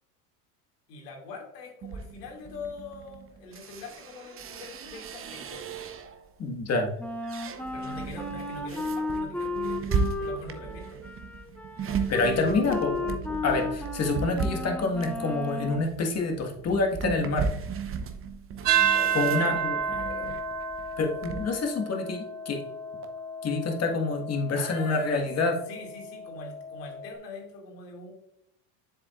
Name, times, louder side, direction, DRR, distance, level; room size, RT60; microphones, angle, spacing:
voice 1, 0.9-5.6 7.7-9.8 10.2-11.0 18.9-20.5 24.5-25.3 25.7-28.1, left 3 dB, 80° left, 0 dB, 2.6 m, -43 dB
sound 1, 1.8-6.3 6.8-21.5, right 5 dB, 25° right, 0.8 m, -36 dB
voice 2, 6.4-6.9 12.1-13.1 13.4-17.5 19.1-19.8 21.0-22.6 23.4-25.6, left 3 dB, 30° left, 2 dB, 1.6 m, -27 dB
Wind instrument woodwind instrument, 7.0-15.9, left 2 dB, 5° left, 0.6 m, -34 dB
sound 2, 18.6-27.1, right 7 dB, 75° right, 1.1 m, -31 dB
7.6 x 7.1 x 2.5 m, 0.77 s
supercardioid pair, 105°, 48 cm